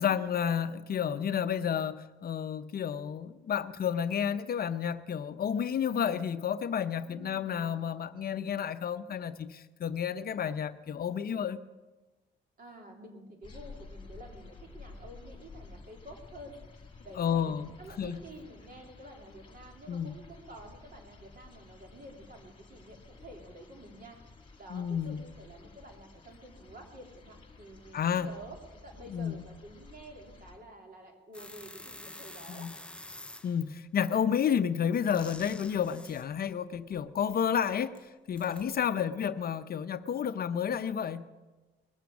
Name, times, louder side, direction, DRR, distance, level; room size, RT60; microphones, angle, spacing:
voice 1, 0.0-11.6 17.2-17.7 18.0-18.2 19.9-20.2 24.7-25.2 27.9-28.3 29.1-29.4 32.5-32.7 33.4-41.3, left 8 dB, 50° left, 11 dB, 0.6 m, -31 dB
voice 2, 7.1-7.4 12.6-16.6 17.0-24.2 24.6-32.7 38.8-39.3, right 1 dB, 45° right, 2 dB, 3.0 m, -50 dB
sound 1, 13.4-30.6, left 3 dB, 25° left, 2.0 m, -52 dB
sound 2, 31.3-33.7 34.9-36.3 37.9-38.0 38.4-38.6, left 1 dB, 5° left, 0.5 m, -48 dB
20.0 x 7.5 x 7.1 m, 1.2 s
cardioid pair, 90°, 20 cm